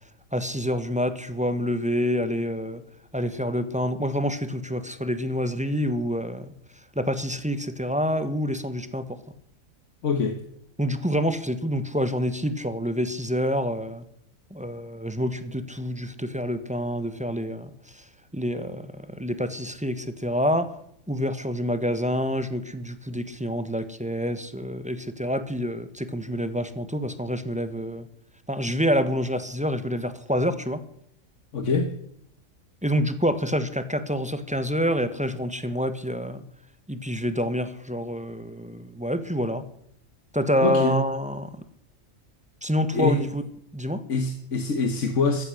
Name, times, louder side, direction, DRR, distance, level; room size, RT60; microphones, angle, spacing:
voice 1, 0.3-2.8 3.1-6.5 6.9-9.2 10.8-14.0 14.5-18.0 18.3-20.8 21.1-28.1 28.5-30.8 32.8-36.4 36.9-39.6 40.3-41.6 42.6-43.4 43.7-44.0, equal, 5° right, 10 dB, 1.2 m, -27 dB
voice 2, 10.0-10.4 31.5-31.9 40.6-41.0 42.9-43.2 44.1-45.4, left 4 dB, 65° left, 6 dB, 1.7 m, -24 dB
14.5 x 14.0 x 6.5 m, 0.72 s
omnidirectional pair, 1.4 m